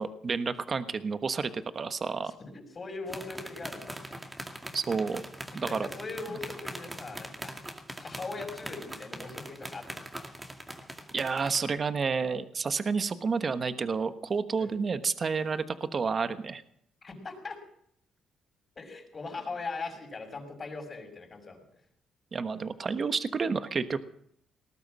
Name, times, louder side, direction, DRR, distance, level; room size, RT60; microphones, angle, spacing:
voice 1, 0.0-2.3 4.7-5.2 5.5-5.9 11.1-16.6 22.3-24.0, right 5 dB, 40° right, 10 dB, 1.2 m, -30 dB
voice 2, 2.2-4.0 5.5-7.5 8.0-10.0 14.6-14.8 17.0-17.6 18.8-21.6, left 3 dB, 35° left, 3 dB, 6.0 m, -40 dB
sound 1, 3.1-11.7, right 1 dB, 10° right, 2.3 m, -42 dB
19.5 x 12.0 x 6.2 m, 0.70 s
cardioid pair, 90°, 0 cm